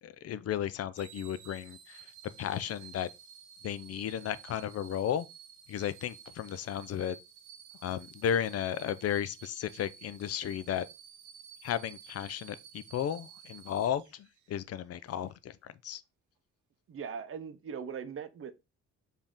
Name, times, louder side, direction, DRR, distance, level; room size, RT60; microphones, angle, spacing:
voice 1, 0.0-2.1 2.4-3.1 3.6-5.3 5.7-7.2 7.8-10.9 11.6-16.0, left 9 dB, 55° left, 0.4 m, -34 dB
sound 1, 0.9-14.6 15.1-15.3, right 8 dB, 85° right, 0.8 m, -53 dB
voice 2, 16.9-18.5, right 6 dB, 45° right, 0.6 m, -40 dB
5.0 x 2.7 x 3.6 m
cardioid pair, 90°, 30 cm